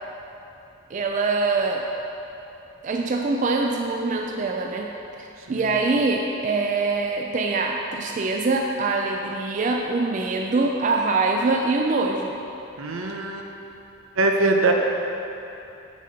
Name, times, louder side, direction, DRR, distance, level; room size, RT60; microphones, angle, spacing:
voice 1, 0.9-1.9 2.8-12.4, right 3 dB, 35° right, 1 dB, 0.3 m, -24 dB
voice 2, 12.8-13.5 14.2-14.7, right 2 dB, 85° right, 2 dB, 0.7 m, -22 dB
7.1 x 4.3 x 5.0 m, 2.9 s
head